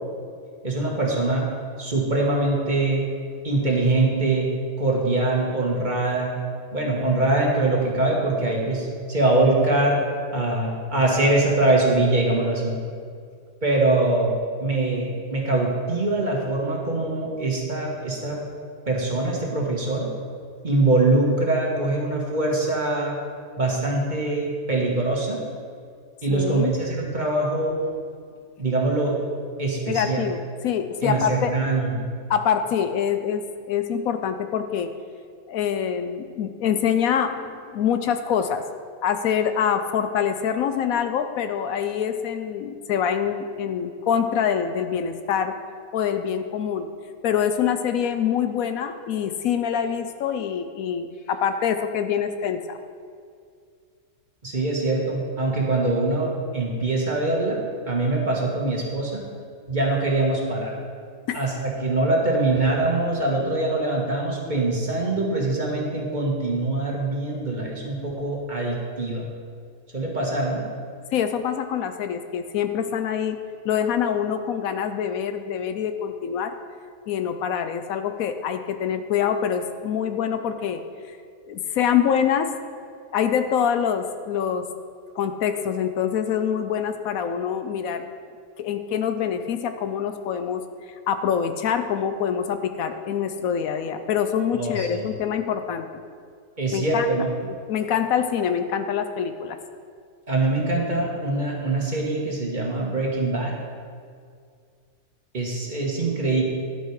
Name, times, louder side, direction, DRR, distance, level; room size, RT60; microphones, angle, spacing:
voice 1, 0.6-1.5 1.8-3.0 3.4-4.5 4.8-6.4 6.7-10.0 10.3-12.8 13.6-14.3 14.6-18.4 18.9-20.1 20.6-23.1 23.6-25.4 26.2-27.7 28.6-29.2 29.6-30.2 31.0-32.0 54.4-59.2 59.7-60.7 61.3-69.3 69.9-70.6 94.6-95.0 96.6-97.3 100.3-103.5 105.3-106.4, right 2 dB, 35° right, -2 dB, 1.6 m, -23 dB
voice 2, 26.3-26.7 29.9-31.5 32.3-33.4 33.7-34.9 35.5-38.6 39.0-45.5 45.9-46.9 47.2-52.8 61.3-61.4 71.1-73.4 73.6-76.5 77.1-80.8 81.5-82.5 83.1-84.6 85.2-88.1 88.6-90.6 91.1-95.8 96.7-97.1 97.4-99.6, left 8 dB, 75° left, 9 dB, 1.0 m, -25 dB
11.5 x 7.8 x 4.8 m, 2.2 s
omnidirectional pair, 1.5 m